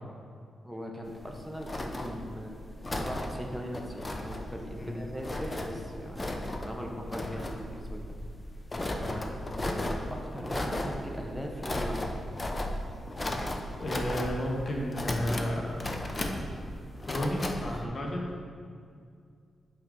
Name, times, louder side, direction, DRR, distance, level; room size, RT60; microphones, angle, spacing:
voice 1, 0.6-2.5 2.9-8.0 9.6-12.1 17.7-17.9, equal, ahead, 1 dB, 1.0 m, -39 dB
sound 1, 1.1-17.8, left 1 dB, 30° left, 0.7 m, -35 dB
voice 2, 13.6-15.7 16.1-16.7 17.1-18.2, equal, 45° left, -1 dB, 1.4 m, -33 dB
8.4 x 5.7 x 3.8 m, 2.2 s
cardioid pair, 70°, 0 cm